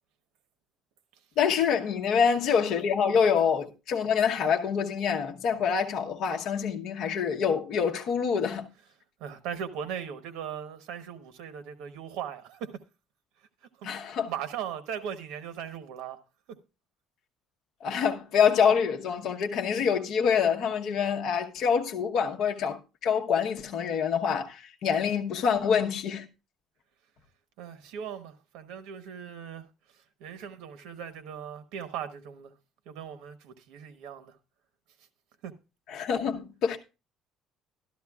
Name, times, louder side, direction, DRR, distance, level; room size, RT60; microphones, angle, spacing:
voice 1, 1.4-8.7 13.8-14.3 17.8-26.3 35.9-36.8, left 7 dB, 55° left, 1.0 m, -26 dB
voice 2, 9.2-12.8 13.8-16.2 16.5-16.6 27.6-32.5 32.9-34.4 35.4-35.5, right 8 dB, 85° right, 1.0 m, -39 dB
12.5 x 12.5 x 2.4 m
cardioid pair, 160°, 0 cm